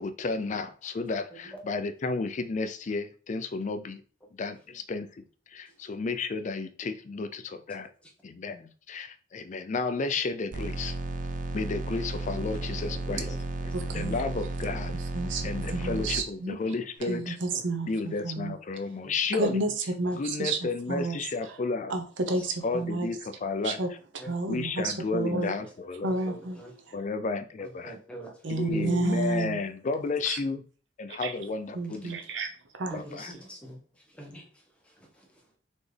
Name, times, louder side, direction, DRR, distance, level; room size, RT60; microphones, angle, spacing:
voice 1, 0.0-4.0 4.4-7.9 8.2-11.0 11.5-13.3 13.9-14.9 15.4-19.6 20.2-22.0 22.6-23.8 24.5-26.1 26.9-27.9 28.5-30.6 31.0-32.2 32.9-33.3, left 3 dB, 40° left, 0.4 m, -32 dB
sound 1, 10.5-16.2, right 2 dB, 45° right, 0.4 m, -33 dB
voice 2, 12.6-13.7 19.0-19.1 22.4-22.5 24.2-24.3 25.3-25.4 26.0-26.8 27.6-28.4 28.7-29.1 32.0-32.1 32.9-35.6, right 1 dB, 5° left, 1.0 m, -45 dB
voice 3, 13.7-14.2 15.1-16.6 17.1-18.6 19.3-20.6 20.9-21.2 21.9-23.1 23.6-23.9 24.3-25.5 26.0-26.6 26.9-27.0 28.4-29.6 30.3-30.4 31.1-31.3 31.7-32.5 32.8-33.0, right 2 dB, 85° right, 0.7 m, -30 dB
4.2 x 3.0 x 3.3 m
head